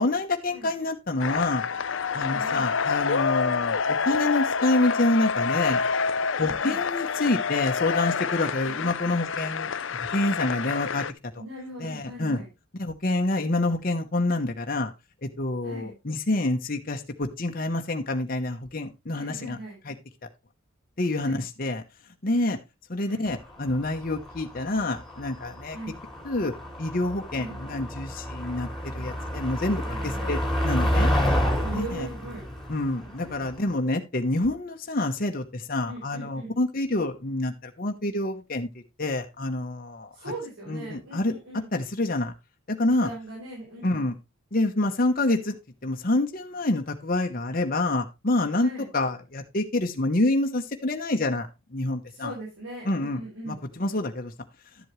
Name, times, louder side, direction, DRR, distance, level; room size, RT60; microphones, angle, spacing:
voice 1, 0.0-1.6 2.1-5.8 6.4-9.7 10.1-11.0 11.8-12.4 12.7-14.9 15.2-19.6 19.8-19.9 21.0-21.8 22.2-22.6 22.9-25.8 26.2-26.5 26.8-31.1 31.7-32.1 32.7-38.7 39.0-40.1 40.7-41.3 41.7-42.3 42.7-43.1 43.8-44.1 44.5-45.6 45.8-51.5 51.7-52.3 52.8-53.2 53.5-54.3, left 2 dB, 45° left, 4 dB, 1.0 m, -27 dB
sound 1, 1.2-11.1, left 5 dB, 60° left, 0.6 m, -27 dB
voice 2, 2.2-2.7 6.4-6.8 8.5-9.1 11.4-12.5 15.6-15.9 19.1-19.8 21.2-21.4 23.1-23.2 25.7-25.9 27.4-27.6 29.8-30.4 31.6-32.4 33.2-33.6 35.9-36.6 40.1-41.7 43.0-44.1 48.6-48.9 52.1-53.6, right 1 dB, 90° right, -6 dB, 5.4 m, -40 dB
Motor vehicle (road), 23.3-33.7, equal, ahead, 2.8 m, -29 dB
12.0 x 7.7 x 3.1 m, 0.24 s
head